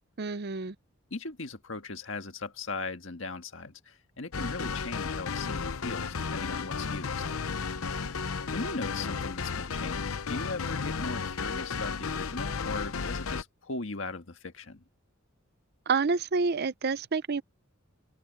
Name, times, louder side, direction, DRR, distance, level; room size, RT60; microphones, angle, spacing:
voice 1, 0.2-0.8 15.9-17.4, right 4 dB, 50° right, 0.6 m, -28 dB
voice 2, 1.1-7.2 8.1-8.3 8.5-14.8, left 3 dB, 65° left, 1.7 m, -38 dB
sound 1, 4.3-13.4, left 5 dB, 90° left, 0.8 m, -33 dB
open air
head